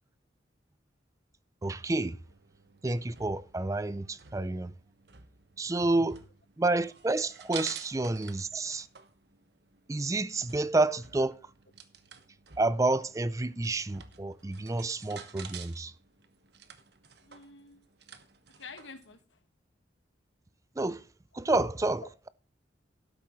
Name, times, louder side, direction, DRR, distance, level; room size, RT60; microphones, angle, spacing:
voice 1, 1.6-2.2 2.8-4.7 5.6-6.2 6.6-8.9 9.9-11.4 12.6-15.9 20.8-21.0 21.3-22.3, right 2 dB, 15° right, 0.4 m, -29 dB
sound 1, 2.2-19.2, right 7 dB, 60° right, 1.2 m, -50 dB
voice 2, 17.2-17.8 18.6-19.4 22.0-22.3, left 4 dB, 85° left, 1.9 m, -48 dB
12.0 x 12.0 x 3.1 m
head